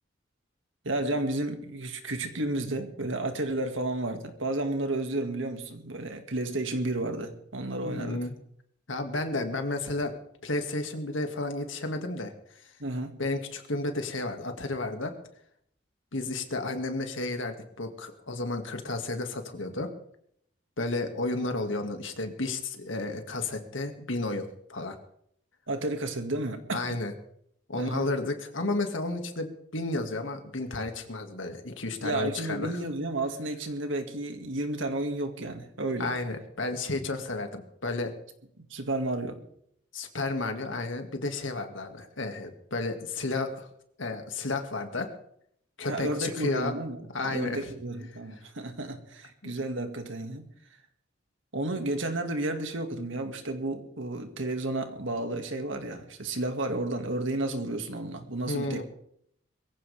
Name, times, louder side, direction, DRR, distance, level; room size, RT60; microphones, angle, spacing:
voice 1, 0.8-8.2 12.8-13.1 25.7-27.0 27.8-28.1 32.0-36.1 38.6-39.4 45.8-50.5 51.5-58.8, right 2 dB, 85° right, 6 dB, 2.3 m, -32 dB
voice 2, 7.8-8.3 8.9-10.1 10.4-12.3 12.6-12.7 13.2-15.1 16.1-19.9 20.8-25.0 26.7-27.1 27.7-32.8 36.0-38.1 39.9-43.7 44.0-45.1 45.8-46.7 47.1-47.7 49.4-49.5 58.5-58.8, left 2 dB, 90° left, 5 dB, 2.3 m, -32 dB
22.5 x 15.5 x 3.6 m, 0.70 s
head